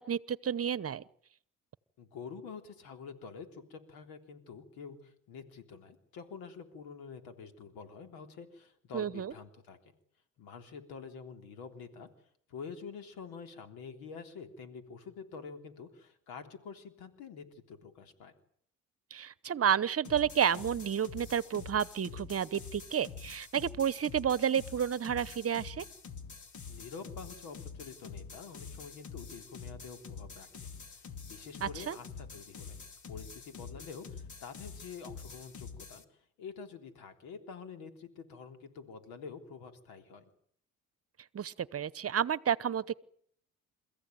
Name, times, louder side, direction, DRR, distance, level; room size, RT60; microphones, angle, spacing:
voice 1, 0.1-1.0 8.9-9.3 19.1-25.8 31.6-32.0 41.3-43.0, right 8 dB, 40° right, 19 dB, 1.0 m, -31 dB
voice 2, 2.0-9.8 10.4-12.1 12.5-18.3 26.7-32.8 33.1-40.3, left 5 dB, 90° left, 7 dB, 3.6 m, -47 dB
sound 1, 20.0-36.0, left 5 dB, 55° left, 2.9 m, -47 dB
28.5 x 15.0 x 9.4 m, 0.65 s
cardioid pair, 85°, 35 cm